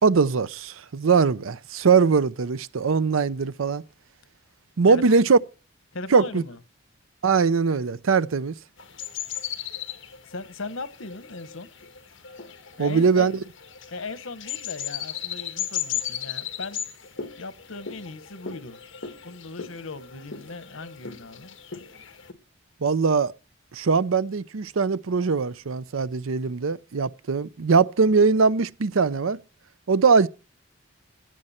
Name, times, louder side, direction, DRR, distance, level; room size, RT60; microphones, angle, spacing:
voice 1, 0.0-3.8 4.8-5.4 6.1-6.4 7.2-8.6 12.8-13.4 22.8-23.3 23.7-29.4 29.9-30.3, right 5 dB, 85° right, 0.6 m, -21 dB
voice 2, 4.9-5.2 5.9-6.6 10.3-11.7 12.8-13.3 13.9-16.9 17.4-18.8 19.2-21.6, left 3 dB, 90° left, 1.3 m, -38 dB
sound 1, 8.8-22.3, left 9 dB, 70° left, 1.4 m, -36 dB
16.5 x 12.0 x 4.3 m
head